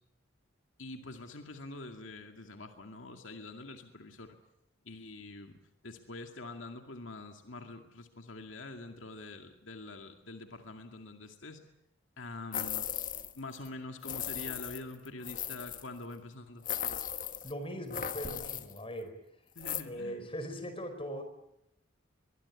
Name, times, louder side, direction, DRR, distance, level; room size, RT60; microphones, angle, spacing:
voice 1, 0.8-4.4 4.8-5.5 5.8-11.6 12.2-12.9 13.2-16.6 19.5-20.2, left 2 dB, 80° left, 4 dB, 2.2 m, -45 dB
sound 1, 12.5-13.4 13.6-13.7 14.0-15.9 16.6-17.5 17.9-18.8 19.6-19.8, left 10 dB, 45° left, 1.4 m, -37 dB
voice 2, 17.4-19.1 19.8-21.2, equal, 30° left, 9 dB, 4.8 m, -40 dB
23.5 x 22.0 x 8.4 m, 0.82 s
head